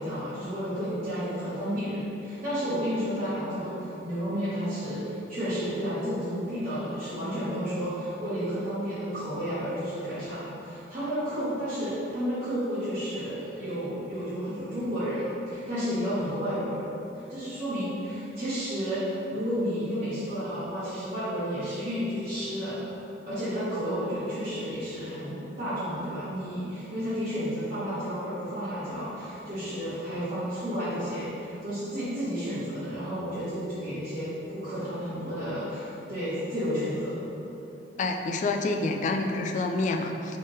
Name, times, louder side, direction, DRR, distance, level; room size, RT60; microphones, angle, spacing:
voice 1, 0.0-22.8 23.3-37.2, equal, 40° right, -14 dB, 1.2 m, -31 dB
voice 2, 38.0-40.4, left 3 dB, 45° left, 3 dB, 0.3 m, -28 dB
3.6 x 3.3 x 4.0 m, 3.0 s
head